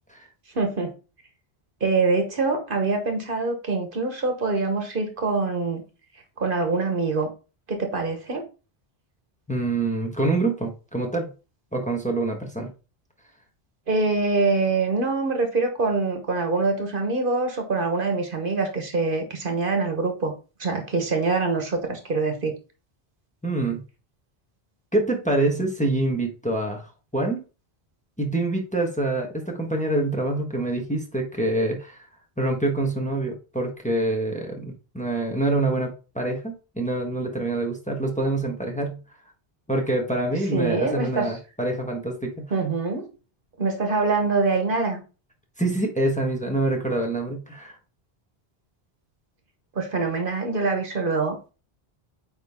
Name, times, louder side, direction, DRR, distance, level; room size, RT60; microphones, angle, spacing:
voice 1, 0.5-0.9 1.8-5.8 6.4-7.3 7.7-8.4 13.9-20.3 20.6-22.5 40.5-41.3 42.5-43.1 43.6-45.0 49.7-51.5, right 3 dB, 60° right, 5 dB, 1.3 m, -24 dB
voice 2, 9.5-11.3 11.7-12.7 23.4-23.8 24.9-27.4 28.2-32.0 32.4-39.0 39.7-42.3 45.6-47.7, right 2 dB, 5° left, 2 dB, 1.2 m, -26 dB
8.7 x 3.5 x 3.6 m, 0.33 s
omnidirectional pair, 1.0 m